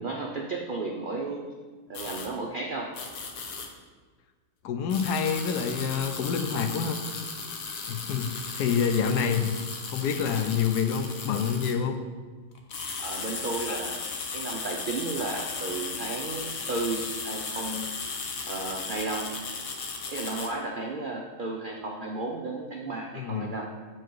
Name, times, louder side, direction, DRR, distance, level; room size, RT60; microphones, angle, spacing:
voice 1, 0.0-1.5 1.9-2.9 13.0-14.1 14.3-17.9 18.5-19.3 20.1-23.7, right 3 dB, 85° right, 1 dB, 0.4 m, -33 dB
sound 1, 1.9-2.3 2.9-3.7 4.9-11.8 12.5-20.5, left 4 dB, 60° left, 1.2 m, -36 dB
voice 2, 4.6-7.0 7.9-9.5 9.9-12.0 13.7-13.8 23.1-23.5, left 7 dB, 80° left, 6 dB, 1.2 m, -27 dB
7.8 x 4.6 x 4.6 m, 1.4 s
omnidirectional pair, 1.7 m